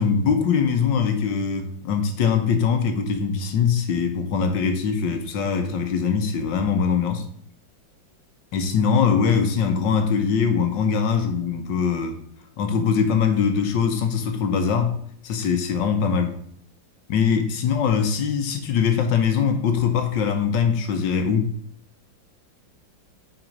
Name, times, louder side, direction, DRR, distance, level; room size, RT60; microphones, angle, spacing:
voice 1, 0.0-7.2 8.5-12.2 12.6-14.9 15.2-16.3 17.1-21.5, left 6 dB, 70° left, 6 dB, 1.5 m, -22 dB
6.0 x 5.2 x 5.2 m, 0.63 s
omnidirectional pair, 2.1 m